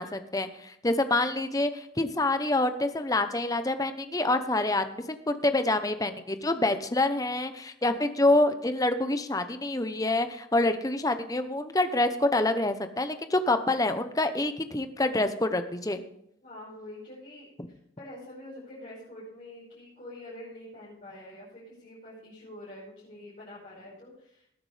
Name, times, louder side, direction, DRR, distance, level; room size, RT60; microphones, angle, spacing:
voice 1, 0.0-4.8 5.3-16.0, left 2 dB, 20° left, 9 dB, 0.8 m, -26 dB
voice 2, 16.4-24.5, left 1 dB, 40° left, -9 dB, 5.7 m, -46 dB
19.0 x 9.6 x 3.4 m, 0.74 s
head